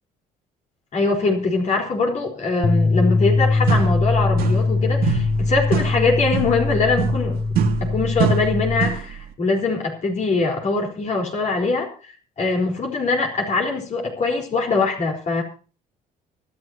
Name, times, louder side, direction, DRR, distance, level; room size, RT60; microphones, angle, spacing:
voice 1, 0.9-15.4, left 3 dB, 45° left, 1 dB, 4.3 m, -22 dB
sound 1, 2.6-8.9, left 3 dB, 25° left, 0.8 m, -21 dB
sound 2, 3.3-3.4 3.7-4.8 5.0-9.1, right 8 dB, 65° right, 2.4 m, -25 dB
24.5 x 11.0 x 2.9 m, 0.39 s
cardioid pair, 110°, 17 cm